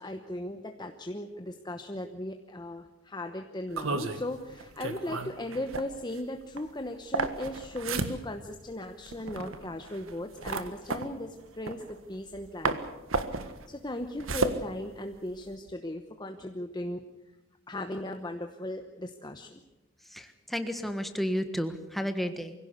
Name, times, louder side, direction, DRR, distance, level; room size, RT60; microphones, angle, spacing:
voice 1, 0.0-12.8 13.3-17.0 17.7-19.6, left 1 dB, 20° left, 5 dB, 1.0 m, -37 dB
sound 1, 3.7-12.4 12.6-15.5, right 3 dB, 90° right, 1.6 m, -34 dB
voice 2, 20.1-22.5, equal, ahead, 7 dB, 1.5 m, -32 dB
24.0 x 16.5 x 8.2 m, 1.0 s
head